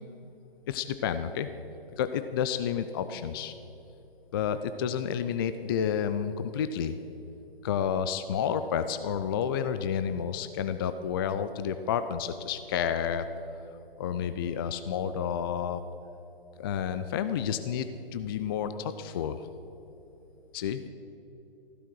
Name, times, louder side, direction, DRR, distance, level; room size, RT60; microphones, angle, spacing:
voice 1, 0.7-1.5 2.0-3.5 4.3-7.0 7.6-13.3 14.0-15.8 16.6-19.4 20.5-20.9, left 8 dB, 25° left, 10 dB, 0.4 m, -30 dB
15.0 x 12.0 x 6.2 m, 3.0 s
hypercardioid pair, 135°, 30 cm